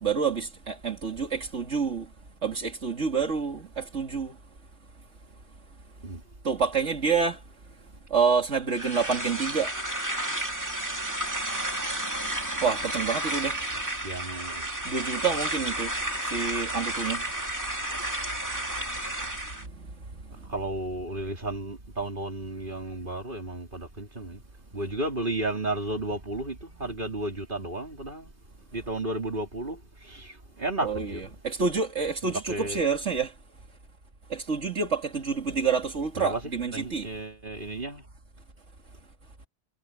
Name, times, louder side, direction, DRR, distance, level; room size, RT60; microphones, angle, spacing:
voice 1, 0.0-2.1 2.4-4.3 6.4-7.4 8.1-9.7 12.2-13.6 14.8-16.0 16.2-17.2 30.8-33.3 34.3-37.1, right 5 dB, 75° right, 2.9 m, -28 dB
sound 1, 8.7-19.7, right 1 dB, 15° right, 2.4 m, -32 dB
voice 2, 14.0-14.7 20.5-24.4 24.7-28.3 28.7-31.2 32.5-32.8 36.2-36.4 36.7-38.0, right 2 dB, 45° right, 4.3 m, -33 dB
omnidirectional pair, 1.2 m